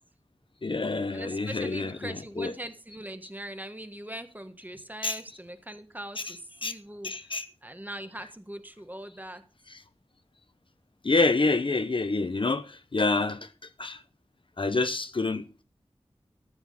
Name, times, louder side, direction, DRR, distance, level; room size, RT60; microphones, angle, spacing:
voice 1, 0.6-2.5 5.0-5.2 6.6-6.7 7.0-7.5 11.0-13.5 13.8-14.0 14.6-15.6, left 3 dB, 55° left, 0.8 m, -27 dB
voice 2, 1.1-7.1 7.6-9.4 11.3-11.5, right 1 dB, 15° right, 1.3 m, -41 dB
14.0 x 7.2 x 5.5 m
wide cardioid pair, 65°, 11 cm